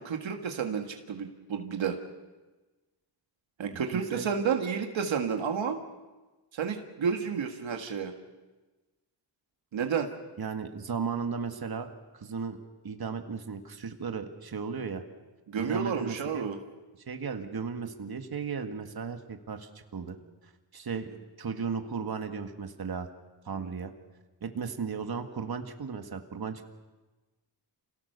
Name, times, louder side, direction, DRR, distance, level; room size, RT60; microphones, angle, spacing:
voice 1, 0.0-2.0 3.6-5.8 6.5-8.1 9.7-10.1 15.5-16.6 23.6-23.7, right 6 dB, 90° right, 4 dB, 1.8 m, -31 dB
voice 2, 3.9-4.3 10.4-12.6 12.8-15.0 15.6-16.5 17.1-20.2 20.7-21.1 21.4-23.1 23.4-23.9 24.4-26.6, right 5 dB, 55° right, 6 dB, 1.9 m, -35 dB
27.5 x 17.5 x 6.8 m, 1.2 s
cardioid pair, 75°, 44 cm